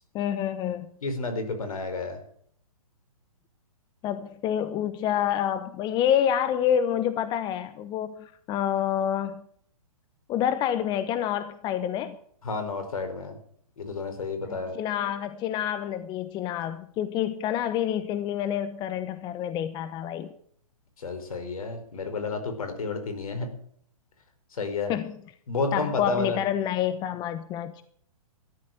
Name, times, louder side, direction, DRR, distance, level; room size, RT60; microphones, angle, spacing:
voice 1, 0.1-0.9 4.0-9.4 10.3-12.2 14.5-20.3 24.9-25.1 25.7-27.8, left 10 dB, 25° left, 12 dB, 1.0 m, -28 dB
voice 2, 1.0-2.2 12.4-13.4 13.8-14.8 21.0-23.5 24.5-24.9 25.5-26.4, left 3 dB, 70° left, 8 dB, 4.7 m, -31 dB
14.0 x 11.5 x 9.1 m, 0.64 s
hypercardioid pair, 130°, 19 cm